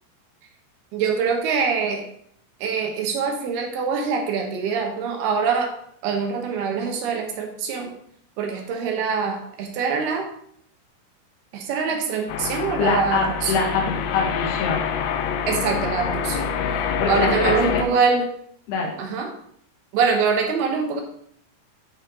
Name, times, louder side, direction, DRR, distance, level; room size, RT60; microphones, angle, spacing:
voice 1, 0.9-2.0 2.6-5.7 6.0-7.9 8.4-10.3 11.5-13.7 15.5-16.5 17.1-18.3 19.0-19.3 19.9-21.0, right 5 dB, 70° right, 2 dB, 2.7 m, -24 dB
sound 1, 12.3-17.8, left 7 dB, 85° left, 3.0 m, -26 dB
voice 2, 12.8-14.8 17.0-17.9 18.7-18.9, left 4 dB, 70° left, 0 dB, 3.2 m, -24 dB
11.0 x 4.5 x 3.6 m, 0.65 s
omnidirectional pair, 5.3 m